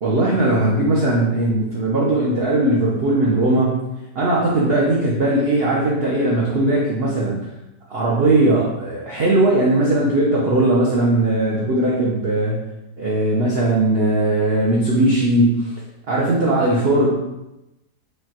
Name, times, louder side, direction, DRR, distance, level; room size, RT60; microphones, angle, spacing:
voice 1, 0.0-3.8 4.1-7.4 7.9-12.6 13.0-15.7 16.1-17.1, right 2 dB, 70° right, -5 dB, 0.5 m, -18 dB
5.0 x 2.3 x 2.8 m, 0.92 s
omnidirectional pair, 1.9 m